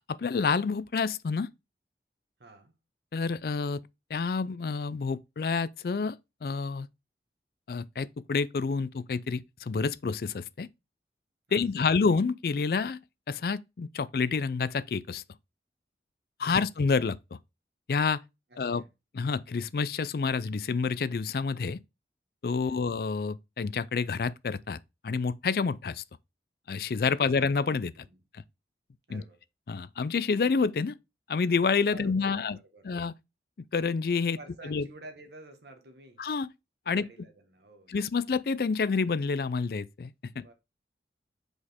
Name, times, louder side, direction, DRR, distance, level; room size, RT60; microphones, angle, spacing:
voice 1, 0.1-1.5 3.1-3.8 4.1-6.2 6.4-6.9 7.7-10.7 11.5-13.0 13.3-15.2 16.4-17.2 17.9-18.2 18.6-18.8 19.1-21.8 22.4-24.8 25.0-26.0 26.7-28.1 28.3-28.4 29.1-29.2 29.7-31.0 31.3-32.6 32.8-33.1 33.7-34.4 34.6-34.9 36.2-36.5 36.9-37.1 37.9-40.1 40.4-40.5, left 5 dB, 55° left, 0.4 m, -28 dB
voice 2, 2.4-2.8 11.5-11.9 16.4-16.7 18.5-18.9 22.6-22.9 27.2-27.4 27.9-28.2 29.1-29.4 31.9-33.0 34.4-36.2 36.8-38.0 40.3-40.5, right 2 dB, 70° right, 1.5 m, -51 dB
6.3 x 5.0 x 3.5 m
head